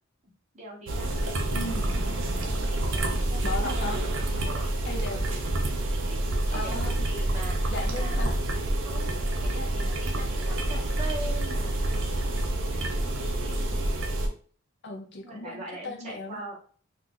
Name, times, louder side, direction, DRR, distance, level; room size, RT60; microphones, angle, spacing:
voice 1, 0.5-1.1 2.4-3.9 4.4-4.6 6.1-6.2 6.5-8.3 8.8-11.9 12.7-13.9 15.2-16.6, right 2 dB, 35° right, -2 dB, 1.0 m, -42 dB
sound 1, 0.9-14.3, right 1 dB, 60° right, 0.5 m, -28 dB
voice 2, 1.5-1.9 3.4-4.0 4.8-5.3 6.5-7.1 7.7-8.3 14.8-16.4, left 2 dB, 55° left, 4 dB, 0.5 m, -36 dB
2.7 x 2.4 x 3.6 m, 0.43 s
head